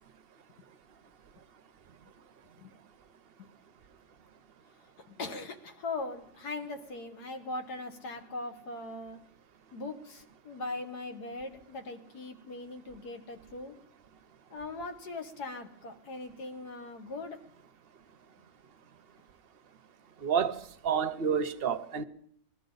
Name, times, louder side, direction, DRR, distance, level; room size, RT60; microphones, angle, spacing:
voice 1, 4.8-9.2 9.7-13.8 14.5-17.4, left 2 dB, 85° left, 2.0 m, -40 dB
voice 2, 20.2-22.0, right 7 dB, 55° right, 0.7 m, -29 dB
20.5 x 13.5 x 3.9 m
omnidirectional pair, 1.7 m